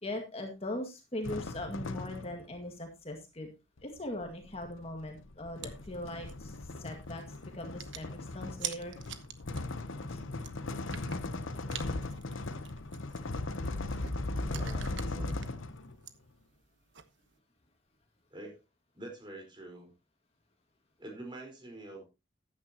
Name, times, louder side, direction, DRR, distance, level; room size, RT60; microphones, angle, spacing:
voice 1, 0.0-3.5 3.8-7.2 7.5-8.9 10.1-10.2 11.6-12.0, left 1 dB, 30° left, 3 dB, 2.0 m, -40 dB
sound 1, 1.2-2.5 3.8-16.0, left 2 dB, 90° left, 1.0 m, -38 dB
sound 2, 5.6-17.4, right 10 dB, 70° right, 1.1 m, -48 dB
voice 2, 14.4-14.9 15.1-15.4 18.3-18.6 18.9-19.9 21.0-22.0, right 1 dB, 25° right, 2 dB, 4.5 m, -45 dB
14.5 x 10.0 x 2.9 m, 0.26 s
head